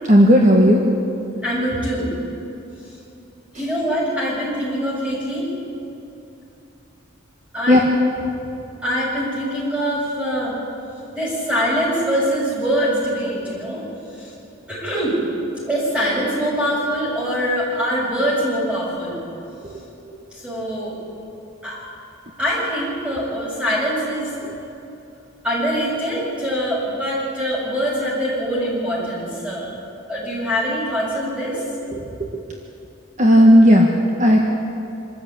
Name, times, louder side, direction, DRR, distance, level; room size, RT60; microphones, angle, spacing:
voice 1, 0.0-0.9 3.5-3.6 7.7-7.8 19.6-19.8 24.4-24.5 31.9-32.5 33.2-33.9 34.2-34.4, equal, 35° right, 0 dB, 1.5 m, -14 dB
voice 2, 1.4-2.1 3.5-5.5 7.5-7.8 8.8-10.5 11.1-13.8 14.2-14.3 14.7-15.2 15.7-19.2 20.3-20.9 21.6-21.8 22.4-24.3 25.4-29.7 30.1-31.6, equal, 5° right, -6 dB, 7.1 m, -23 dB
25.5 x 14.0 x 8.7 m, 2.9 s
head